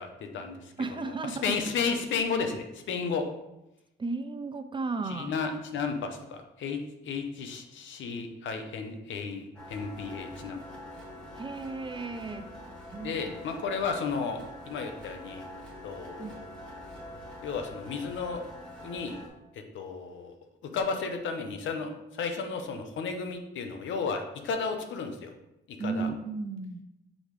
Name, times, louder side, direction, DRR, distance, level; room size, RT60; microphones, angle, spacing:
voice 1, 0.0-3.2 5.0-10.6 13.0-14.4 14.7-15.4 15.8-16.4 17.4-18.4 18.8-19.2 19.7-20.3 20.7-25.3 25.7-26.1, left 5 dB, 70° left, 6 dB, 0.8 m, -33 dB
voice 2, 0.8-1.6 4.0-5.3 11.4-12.5 12.9-13.1 16.2-16.4 25.8-26.8, right 4 dB, 25° right, 9 dB, 0.5 m, -34 dB
sound 1, 9.5-19.3, left 1 dB, 5° left, 2.2 m, -45 dB
6.3 x 4.9 x 3.2 m, 0.90 s
cardioid pair, 90°, 20 cm